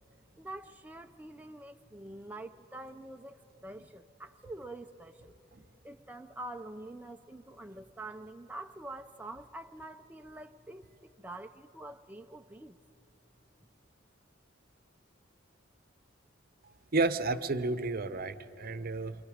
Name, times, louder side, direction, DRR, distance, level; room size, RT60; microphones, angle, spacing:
voice 1, 0.4-5.3 5.8-12.8, right 2 dB, 10° right, 5 dB, 0.4 m, -46 dB
voice 2, 16.9-19.2, right 3 dB, 50° right, 12 dB, 0.7 m, -31 dB
28.0 x 24.0 x 5.0 m, 2.9 s
head